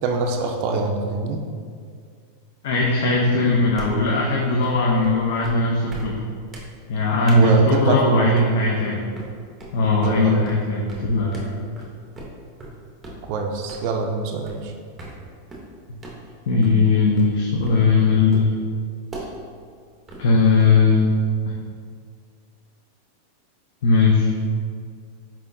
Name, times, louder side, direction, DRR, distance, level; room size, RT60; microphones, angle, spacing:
voice 1, 0.0-1.4 7.4-8.3 10.0-10.4 11.6-11.7 13.3-14.7, right 4 dB, 55° right, 2 dB, 0.3 m, -24 dB
voice 2, 2.6-6.2 6.9-9.0 9.7-11.4 16.5-18.5 20.2-21.1 21.5-21.6 23.8-24.3, left 3 dB, 75° left, -2 dB, 0.5 m, -19 dB
sound 1, 3.8-4.1 4.6-4.8 5.0-5.1 5.4-5.6 5.9-6.1 6.5-6.7 7.3-7.4 8.0-8.1 8.4-8.7 9.2-9.3 9.6-9.7 10.0-10.2 10.5-10.6 10.9-11.0 11.3-11.5 11.8-11.9 12.2-12.3 12.6-12.8 13.0-13.2 13.7-13.9 14.5-14.6 15.0-15.2 15.5-15.7 16.0-16.2 16.6-16.8 17.2-17.3 17.6-17.8 18.3-18.5 19.1-19.3 20.1-20.9, right 2 dB, 15° right, 0.8 m, -38 dB
4.4 x 3.6 x 2.6 m, 2.1 s
supercardioid pair, 135°, 0 cm